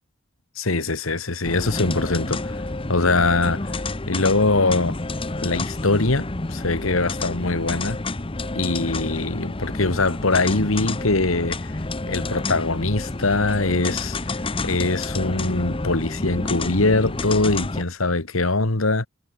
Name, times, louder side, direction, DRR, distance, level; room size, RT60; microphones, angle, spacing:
voice 1, 0.6-2.6 2.9-3.7 4.1-5.0 5.4-8.0 8.6-11.7 12.1-14.2 14.6-19.1, left 3 dB, 80° left, 1.9 m, -22 dB
sound 1, 1.4-17.8, left 2 dB, 25° left, 0.9 m, -29 dB
head